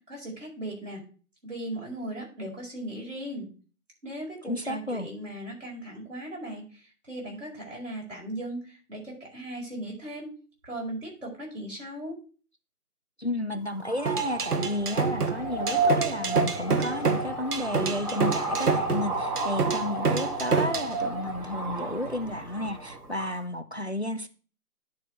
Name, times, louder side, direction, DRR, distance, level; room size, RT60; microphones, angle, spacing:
voice 1, 0.1-1.0 1.4-3.5 4.0-10.3 10.6-12.2, right 1 dB, 55° right, 5.2 m, -37 dB
voice 2, 4.4-5.1 13.2-24.3, left 1 dB, 45° left, 0.5 m, -32 dB
sound 1, 13.6-23.4, right 2 dB, 30° right, 4.3 m, -32 dB
sound 2, 14.1-20.9, right 5 dB, 85° right, 1.1 m, -27 dB
10.0 x 4.9 x 5.6 m
figure-of-eight pair, 180°, 45 cm